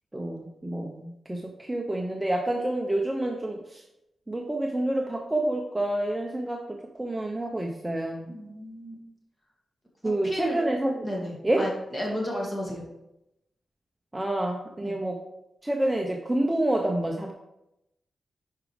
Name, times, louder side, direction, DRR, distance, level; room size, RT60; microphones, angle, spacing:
voice 1, 0.1-3.8 4.3-8.3 10.0-11.1 11.4-11.7 14.1-15.2 15.6-17.3, right 1 dB, 10° right, 2 dB, 0.6 m, -28 dB
voice 2, 8.3-9.0 10.0-10.6 11.0-12.8 14.8-15.0, equal, 20° left, -2 dB, 2.1 m, -33 dB
9.9 x 4.9 x 3.4 m, 0.88 s
wide cardioid pair, 125°, 0 cm